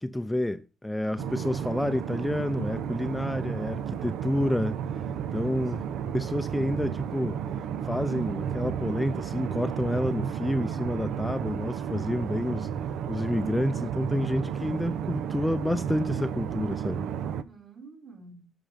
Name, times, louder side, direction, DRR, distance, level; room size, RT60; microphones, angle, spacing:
voice 1, 0.0-4.8 5.3-5.8 6.1-7.4 7.8-12.7 13.1-17.1, left 1 dB, 5° left, 0.5 m, -29 dB
voice 2, 1.0-1.6 5.4-5.9 17.4-18.5, right 4 dB, 50° right, 4.1 m, -49 dB
sound 1, 1.2-17.4, right 8 dB, 80° right, 0.6 m, -32 dB
10.0 x 6.2 x 5.1 m
cardioid pair, 90°, 0 cm